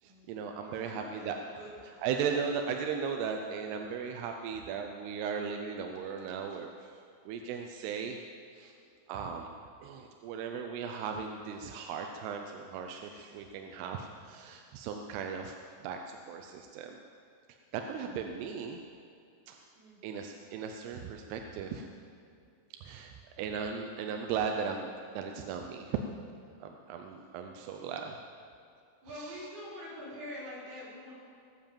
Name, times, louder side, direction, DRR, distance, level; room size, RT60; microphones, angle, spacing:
voice 1, 0.0-1.4 2.0-8.2 8.5-8.7 9.1-9.5 9.8-15.6 15.8-17.0 17.7-18.8 19.5-19.6 20.0-21.9 22.8-26.0 26.6-28.2 29.1-29.5, right 6 dB, 80° right, 4 dB, 2.6 m, -37 dB
voice 2, 0.6-2.0 19.8-20.3 29.0-31.2, equal, 60° right, -8 dB, 6.6 m, -45 dB
19.5 x 7.6 x 7.2 m, 2.4 s
omnidirectional pair, 5.1 m